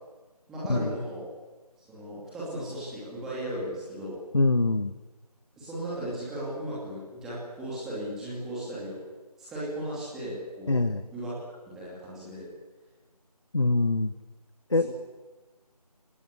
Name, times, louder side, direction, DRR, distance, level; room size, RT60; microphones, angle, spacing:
voice 1, 0.5-1.3 1.9-4.2 5.6-9.0 9.5-10.8 11.1-11.4 11.7-12.5 14.8-14.9, right 1 dB, ahead, -8 dB, 2.7 m, -36 dB
voice 2, 4.3-5.0 10.7-11.0 13.5-14.1 14.7-14.8, left 2 dB, 50° left, 11 dB, 1.2 m, -24 dB
24.5 x 19.0 x 9.8 m, 1.2 s
figure-of-eight pair, 175°, 20 cm